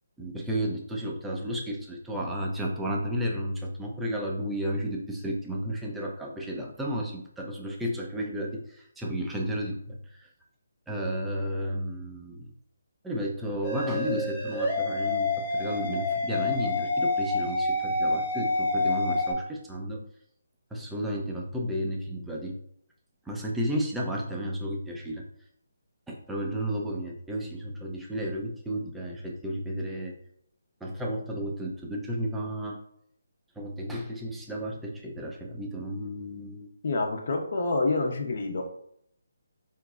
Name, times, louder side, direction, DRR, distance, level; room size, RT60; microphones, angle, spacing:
voice 1, 0.2-10.3 10.9-12.5 13.0-20.0 20.7-22.6 23.3-25.2 26.1-30.1 30.8-32.8 33.6-36.7, equal, 5° right, -2 dB, 0.5 m, -33 dB
sound 1, 13.6-19.3, left 2 dB, 15° left, 1.0 m, -28 dB
voice 2, 36.8-38.6, left 3 dB, 50° left, 3 dB, 0.6 m, -27 dB
3.8 x 2.9 x 2.4 m, 0.69 s
hypercardioid pair, 160°, 0 cm